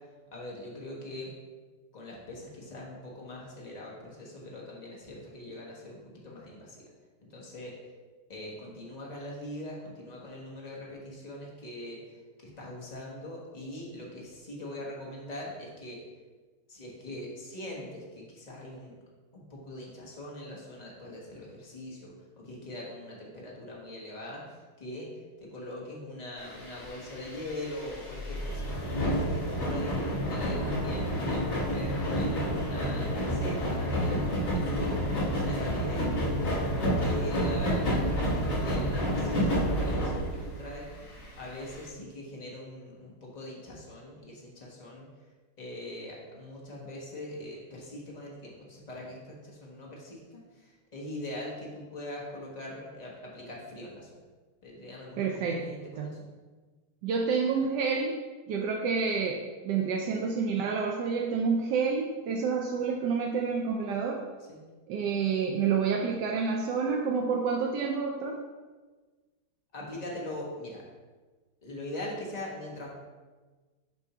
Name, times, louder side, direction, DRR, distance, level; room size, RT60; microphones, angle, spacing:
voice 1, 0.3-1.3 1.9-6.9 7.3-7.8 8.3-12.0 12.4-16.0 16.7-18.9 19.3-24.4 24.8-25.1 25.4-45.1 45.6-54.1 54.6-56.2 64.5-64.6 69.7-70.8 71.6-72.9, left 1 dB, 25° left, -4 dB, 1.1 m, -42 dB
sound 1, 26.4-41.9, equal, 60° left, 2.8 m, -30 dB
voice 2, 55.2-55.6 56.0-56.2 57.0-58.2 58.5-64.2 64.9-68.4, right 5 dB, 70° right, 0 dB, 1.0 m, -29 dB
7.0 x 2.7 x 5.6 m, 1.3 s
omnidirectional pair, 2.3 m